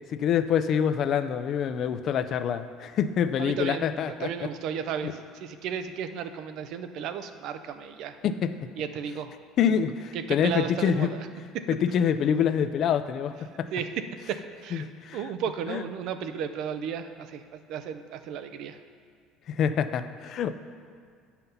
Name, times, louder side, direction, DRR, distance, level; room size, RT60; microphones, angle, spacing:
voice 1, 0.1-4.3 5.0-5.1 8.2-8.5 9.6-11.1 11.7-13.7 14.7-15.2 15.7-15.8 19.5-20.5, left 8 dB, 40° left, 11 dB, 0.4 m, -26 dB
voice 2, 3.4-8.2 8.8-9.4 9.7-9.8 10.1-11.3 11.5-11.6 13.7-14.9 15.1-18.8, right 8 dB, 55° right, 9 dB, 0.5 m, -34 dB
9.2 x 5.7 x 5.6 m, 2.1 s
cardioid pair, 155°, 0 cm